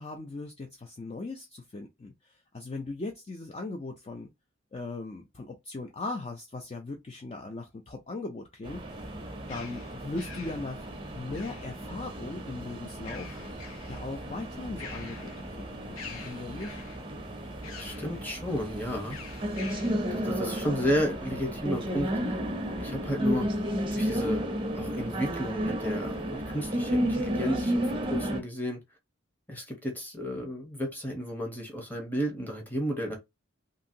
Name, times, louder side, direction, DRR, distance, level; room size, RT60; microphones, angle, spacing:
voice 1, 0.0-4.3 4.7-8.8 9.5-10.9 11.2-13.4 13.9-16.9, left 3 dB, 30° left, 0.3 m, -39 dB
sound 1, 8.6-28.4, equal, 25° right, 0.5 m, -33 dB
sound 2, 8.9-12.0 12.9-14.1 14.5-15.6 15.9-17.1 17.6-18.2 19.1-20.0, left 6 dB, 90° left, 0.7 m, -46 dB
voice 2, 17.7-19.2 20.1-22.1 22.8-23.5 23.9-24.4 24.7-28.8 29.5-33.2, equal, 10° left, 0.8 m, -32 dB
2.8 x 2.6 x 2.6 m
head